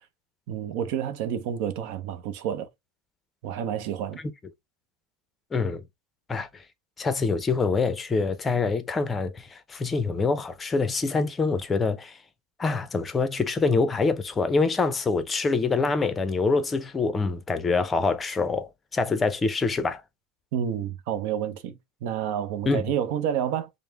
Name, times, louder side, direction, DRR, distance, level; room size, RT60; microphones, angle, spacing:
voice 1, 0.5-2.7 3.4-4.2 20.5-23.7, right 9 dB, 60° right, 0.6 m, -29 dB
voice 2, 5.5-5.8 6.3-6.5 7.0-12.2 12.6-20.0 22.7-22.8, left 4 dB, 15° left, 0.6 m, -25 dB
5.2 x 2.0 x 3.4 m
supercardioid pair, 145°, 0 cm